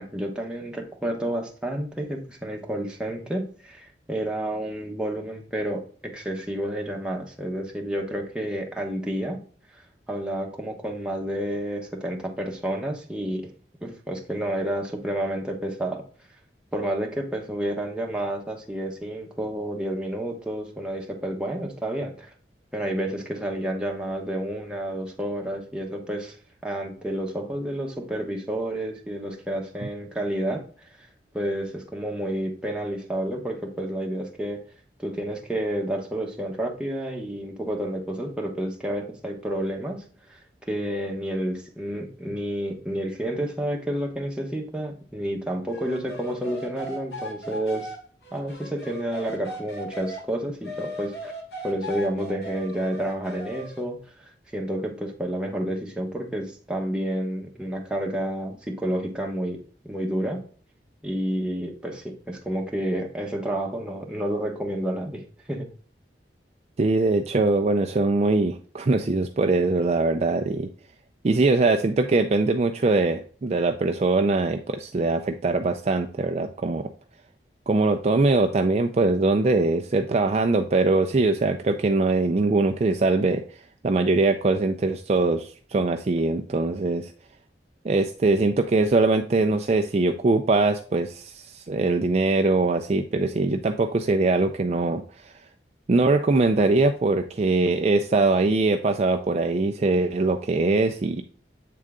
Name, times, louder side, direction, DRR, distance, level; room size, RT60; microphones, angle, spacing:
voice 1, 0.0-9.4 9.7-13.5 13.8-16.0 16.7-22.3 22.7-26.4 26.6-30.9 31.3-34.6 35.0-47.9 48.3-51.3 51.6-59.6 59.8-60.4 61.0-65.7, right 1 dB, 5° right, 0 dB, 1.1 m, -30 dB
sound 1, 45.7-50.2 50.6-53.8, equal, 70° left, 1.6 m, -38 dB
voice 2, 66.8-70.7 71.2-76.9 77.7-87.1 87.8-95.3 95.9-101.2, right 3 dB, 35° right, 6 dB, 0.4 m, -22 dB
7.6 x 3.7 x 3.6 m, 0.43 s
head